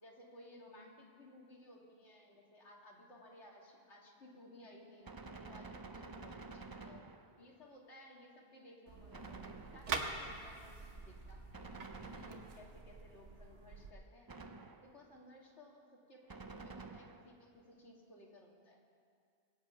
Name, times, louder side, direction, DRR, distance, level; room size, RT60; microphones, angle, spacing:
voice 1, 0.0-7.0 7.4-11.4 12.1-14.4 14.8-18.9, left 1 dB, 80° left, -2 dB, 2.7 m, -58 dB
Gunshot gunfire, 5.0-7.6 9.1-10.2 11.5-13.0 14.3-15.1 16.3-17.4, right 3 dB, 25° right, 0.5 m, -50 dB
sound 1, 8.9-13.9, right 4 dB, 90° right, 1.4 m, -45 dB
22.0 x 8.8 x 5.8 m, 2.2 s
omnidirectional pair, 1.2 m